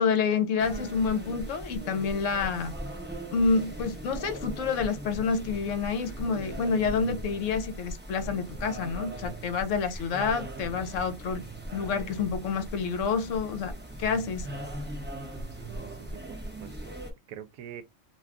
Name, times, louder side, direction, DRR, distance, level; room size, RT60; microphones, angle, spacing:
voice 1, 0.0-2.7 3.3-11.5 11.7-13.7 14.0-14.5, left 5 dB, 65° left, 0.9 m, -28 dB
sound 1, 0.6-17.1, right 1 dB, 15° right, 0.5 m, -39 dB
voice 2, 15.5-16.9 17.3-17.8, right 9 dB, 80° right, 1.0 m, -45 dB
2.6 x 2.3 x 3.5 m
omnidirectional pair, 1.5 m